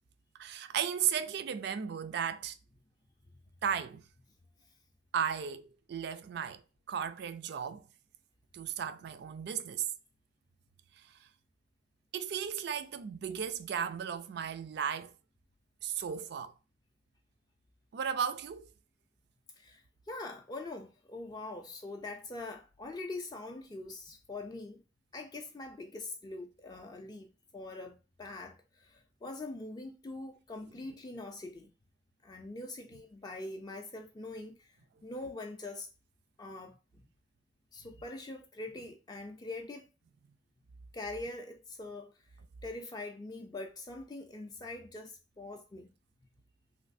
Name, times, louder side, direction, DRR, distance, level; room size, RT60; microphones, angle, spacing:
voice 1, 0.4-2.5 3.6-4.0 5.1-6.6 6.9-7.8 8.5-9.9 12.1-15.1 15.8-16.5 17.9-18.7, right 8 dB, 60° right, 0.3 m, -35 dB
voice 2, 19.6-24.8 25.1-31.7 32.2-34.8 35.0-35.9 36.4-37.1 37.7-39.8 40.9-42.1 42.6-45.9, left 2 dB, 20° left, 0.3 m, -43 dB
3.1 x 2.5 x 2.5 m
head